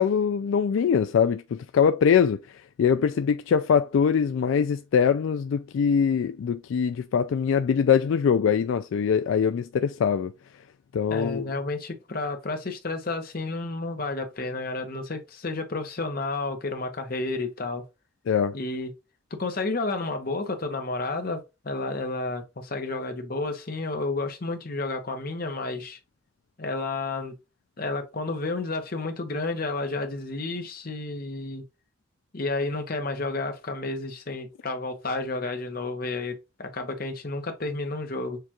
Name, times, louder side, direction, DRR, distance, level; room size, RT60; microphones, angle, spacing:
voice 1, 0.0-10.3 10.9-11.4 18.3-18.6, left 7 dB, 75° left, 0.3 m, -23 dB
voice 2, 11.1-17.8 18.5-18.9 19.4-26.0 26.6-27.3 27.8-31.6 32.3-36.3 36.6-38.4, left 3 dB, 45° left, 0.9 m, -31 dB
6.6 x 2.4 x 2.9 m
head